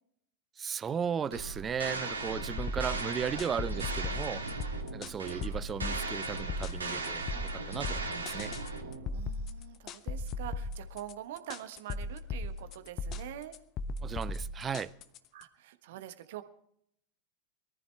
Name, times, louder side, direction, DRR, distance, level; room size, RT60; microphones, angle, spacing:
voice 1, 0.6-4.4 4.9-8.5 14.0-14.9, right 7 dB, 20° right, 0.5 m, -36 dB
sound 1, 1.3-9.2, right 3 dB, 75° right, 2.4 m, -38 dB
sound 2, 2.6-15.4, left 3 dB, 35° left, 1.0 m, -37 dB
voice 2, 9.1-13.6 15.3-16.4, right 12 dB, 55° right, 1.3 m, -45 dB
23.0 x 14.0 x 3.4 m
figure-of-eight pair, 90°, 0 cm